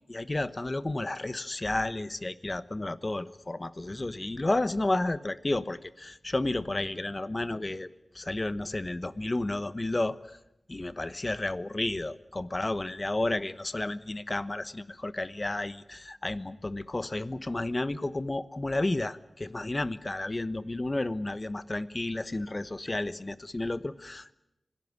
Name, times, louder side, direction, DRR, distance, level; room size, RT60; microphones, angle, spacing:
voice 1, 0.1-7.9 8.1-10.2 10.7-24.3, left 2 dB, 30° left, 14 dB, 1.1 m, -32 dB
26.0 x 18.5 x 9.7 m, 0.88 s
wide cardioid pair, 90°, 0 cm